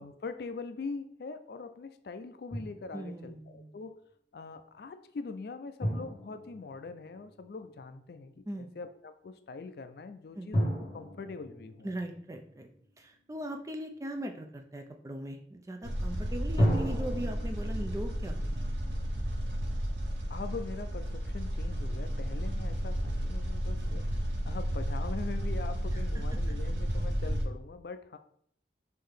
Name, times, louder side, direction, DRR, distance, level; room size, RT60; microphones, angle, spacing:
voice 1, 0.0-4.0 4.3-11.9 20.3-28.2, left 4 dB, 60° left, 9 dB, 0.4 m, -42 dB
Drum, 2.5-3.3 5.8-7.6 10.5-13.0 16.6-19.7, equal, 30° left, 1.5 m, -34 dB
voice 2, 2.9-3.8 8.5-8.7 10.3-10.5 11.8-12.7 13.0-18.7 26.1-26.6, right 1 dB, 20° right, 4 dB, 0.4 m, -40 dB
sound 1, 15.8-27.4, equal, 90° right, 0.9 m, -32 dB
5.6 x 2.7 x 3.5 m, 0.65 s
head